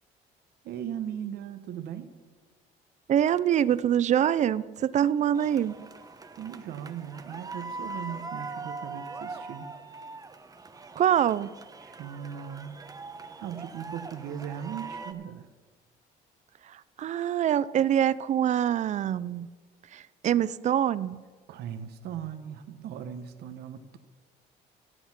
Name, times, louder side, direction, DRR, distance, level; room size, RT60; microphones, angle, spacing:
voice 1, 0.6-2.1 6.4-9.7 11.8-12.8 13.4-15.5 21.5-24.0, right 9 dB, 75° right, 8 dB, 1.0 m, -38 dB
voice 2, 3.1-5.8 11.0-11.5 17.0-19.5 19.9-21.2, right 10 dB, 45° right, 18 dB, 0.4 m, -25 dB
sound 1, 5.3-15.1, right 3 dB, 20° right, 0.9 m, -42 dB
14.0 x 7.9 x 5.9 m, 1.4 s
cardioid pair, 110°, 17 cm